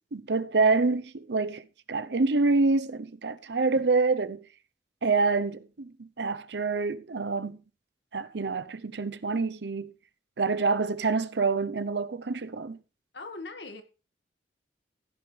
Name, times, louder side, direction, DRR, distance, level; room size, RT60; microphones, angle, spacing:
voice 1, 0.1-4.4 5.0-7.6 8.1-9.9 10.4-12.8, right 3 dB, 70° right, 0.7 m, -27 dB
voice 2, 13.1-13.8, left 3 dB, 80° left, 1.8 m, -40 dB
15.5 x 9.6 x 3.3 m
head